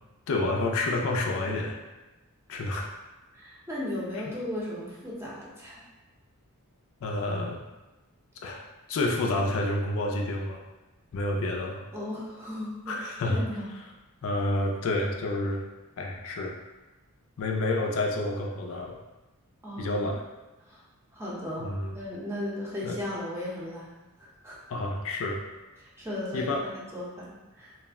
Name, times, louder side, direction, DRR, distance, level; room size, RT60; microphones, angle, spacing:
voice 1, 0.3-1.8 2.5-2.9 4.1-4.2 7.0-7.6 8.4-8.6 8.9-10.6 11.1-11.8 12.9-13.4 14.2-15.6 16.0-16.5 17.4-19.0 19.8-20.2 21.6-22.0 22.8-23.0 24.7-25.4 26.3-26.6, left 2 dB, 65° left, 1 dB, 0.4 m, -29 dB
voice 2, 3.3-5.8 11.9-12.9 13.2-13.7 19.6-20.1 20.7-20.8 21.1-23.9 24.2-24.6 25.8-27.7, left 1 dB, 10° right, -6 dB, 0.6 m, -36 dB
2.4 x 2.1 x 3.4 m, 1.1 s
head